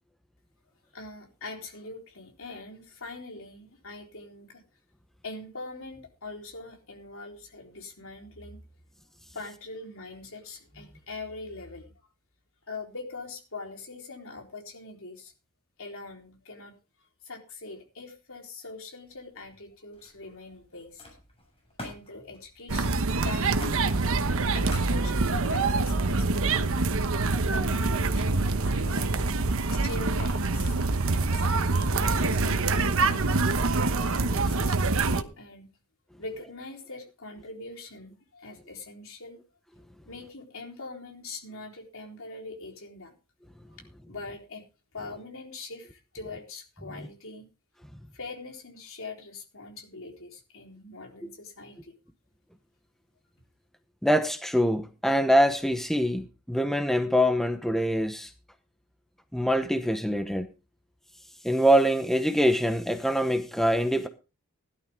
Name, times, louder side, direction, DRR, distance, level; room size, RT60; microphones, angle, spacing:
voice 1, 0.9-4.6 5.2-8.6 9.3-11.9 12.7-15.3 15.8-16.8 17.2-21.0 21.8-24.0 24.5-26.9 27.5-29.2 29.7-30.8 31.1-33.5 34.1-35.7 36.2-39.4 40.1-43.1 43.7-44.7 44.9-47.5 48.1-51.9, left 3 dB, 60° left, 3.9 m, -42 dB
Camera, 19.0-19.6 19.9-25.4, left 1 dB, 25° left, 7.3 m, -47 dB
sound 1, 22.7-35.2, right 3 dB, 65° right, 1.1 m, -25 dB
voice 2, 54.0-58.3 59.3-60.5 61.4-64.1, equal, ahead, 0.9 m, -24 dB
17.0 x 12.0 x 3.6 m
head